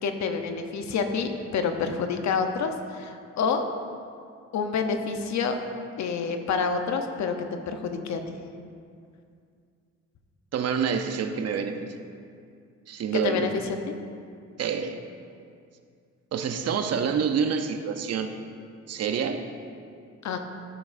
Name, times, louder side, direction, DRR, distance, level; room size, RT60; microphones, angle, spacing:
voice 1, 0.0-3.7 4.5-5.6 6.0-7.3 7.7-8.3 13.2-13.5 20.2-20.4, left 5 dB, 65° left, 6 dB, 0.9 m, -28 dB
voice 2, 10.5-12.0 12.9-13.6 14.6-15.0 16.3-18.3 18.9-19.4, right 6 dB, 55° right, 7 dB, 0.7 m, -27 dB
13.0 x 7.1 x 2.6 m, 2.3 s
cardioid pair, 90°, 30 cm